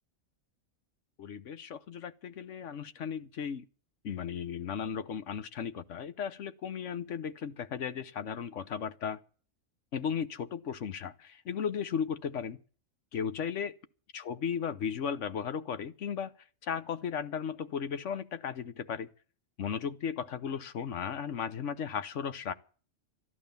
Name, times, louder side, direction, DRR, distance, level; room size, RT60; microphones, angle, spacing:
voice 1, 1.2-3.7 4.0-9.2 9.9-12.6 13.1-13.7 14.1-16.3 16.6-19.1 19.6-22.5, left 7 dB, 65° left, 1.2 m, -35 dB
14.0 x 11.0 x 6.9 m
omnidirectional pair, 1.4 m